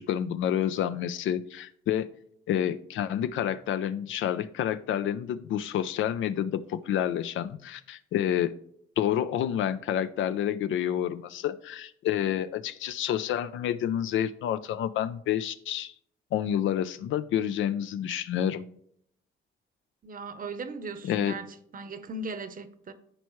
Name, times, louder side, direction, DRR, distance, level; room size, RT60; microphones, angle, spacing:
voice 1, 0.0-2.1 2.5-8.5 9.0-15.9 16.3-18.7 21.0-21.3, left 10 dB, 75° left, 0.6 m, -29 dB
voice 2, 20.0-21.5 21.7-22.9, right 3 dB, 45° right, 0.9 m, -38 dB
14.0 x 4.6 x 3.1 m
cardioid pair, 90°, 20 cm